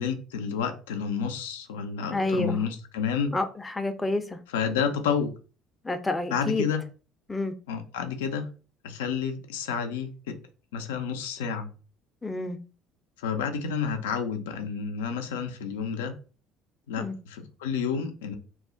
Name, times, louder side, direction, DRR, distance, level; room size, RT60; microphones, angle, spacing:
voice 1, 0.0-3.3 4.5-5.3 6.3-6.8 7.7-8.5 8.8-10.4 10.7-11.7 13.2-16.1 16.9-18.3, left 6 dB, 85° left, 0.4 m, -30 dB
voice 2, 2.1-2.6 3.3-4.4 5.8-6.6 7.3-7.5 12.2-12.6 17.0-17.2, left 2 dB, 15° left, 0.4 m, -29 dB
2.4 x 2.0 x 3.6 m
hypercardioid pair, 65°, 0 cm